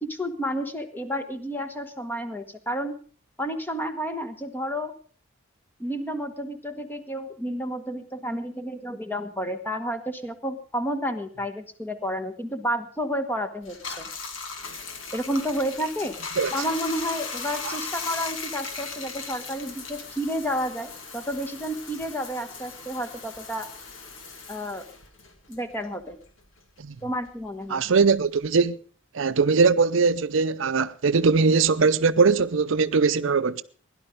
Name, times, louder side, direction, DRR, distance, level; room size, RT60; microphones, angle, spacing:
voice 1, 0.0-3.0 3.4-4.9 5.8-14.0 15.1-16.2 16.5-23.7 24.5-24.9 25.5-26.2 27.0-27.8, equal, 10° left, 1.1 m, -31 dB
Bathtub (filling or washing), 13.6-26.5 26.8-28.6, left 4 dB, 80° left, 2.4 m, -38 dB
voice 2, 27.7-28.8 29.1-33.6, right 4 dB, 75° right, 0.6 m, -21 dB
16.5 x 11.0 x 5.1 m
head